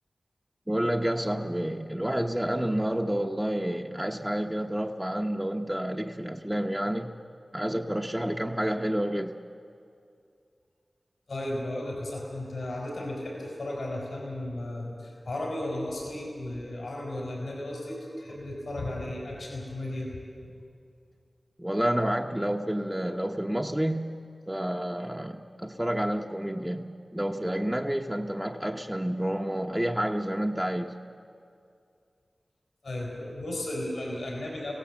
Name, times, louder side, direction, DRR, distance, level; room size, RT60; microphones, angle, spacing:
voice 1, 0.7-7.1 7.5-9.4 21.6-24.2 24.5-30.9, right 1 dB, 10° right, 2 dB, 0.9 m, -29 dB
voice 2, 11.3-20.1 20.4-20.5 25.0-25.1 32.8-34.7, left 1 dB, 85° left, -2 dB, 4.8 m, -35 dB
23.5 x 17.0 x 7.3 m, 2.4 s
cardioid pair, 45°, 0 cm